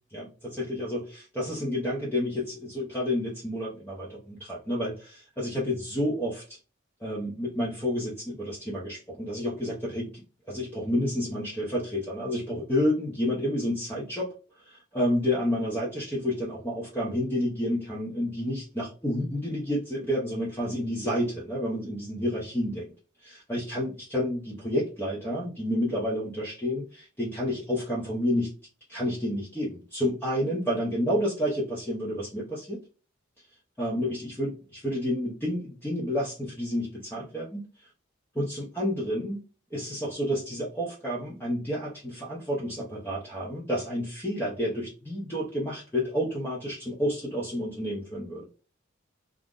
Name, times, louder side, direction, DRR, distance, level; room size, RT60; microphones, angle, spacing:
voice 1, 0.1-6.6 7.0-22.9 23.2-28.5 28.9-32.8 33.8-37.9 38.3-39.4 39.7-48.4, left 1 dB, 10° left, -5 dB, 0.6 m, -30 dB
2.4 x 2.0 x 3.5 m, 0.35 s
head